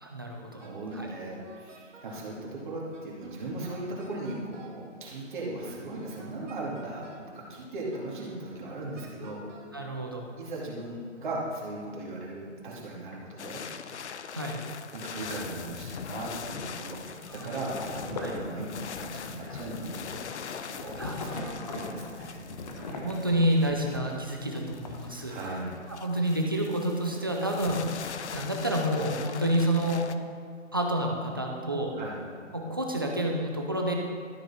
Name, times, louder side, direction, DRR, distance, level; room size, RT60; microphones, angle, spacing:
voice 1, 0.0-0.7 0.9-1.1 9.7-10.3 14.3-14.6 17.0-17.5 18.2-18.4 21.0-21.7 22.8-25.3 25.9-30.1 30.7-31.9 32.5-33.9, right 1 dB, 20° right, 0 dB, 0.5 m, -29 dB
voice 2, 0.5-7.1 7.3-9.4 10.4-13.6 14.9-20.2 20.6-22.5 25.3-25.7 32.0-32.2, right 2 dB, 40° right, -4 dB, 2.4 m, -38 dB
Wind instrument woodwind instrument, 0.6-2.5 2.9-4.8 5.4-7.3 7.9-9.8, right 3 dB, 75° right, 1.9 m, -50 dB
sound 1, 13.4-30.1, left 7 dB, 60° left, 0.6 m, -42 dB
sound 2, 17.2-20.0 20.8-24.2 24.5-25.0, left 2 dB, 35° left, 1.0 m, -40 dB
13.0 x 6.3 x 4.3 m, 2.1 s
hypercardioid pair, 165°, 38 cm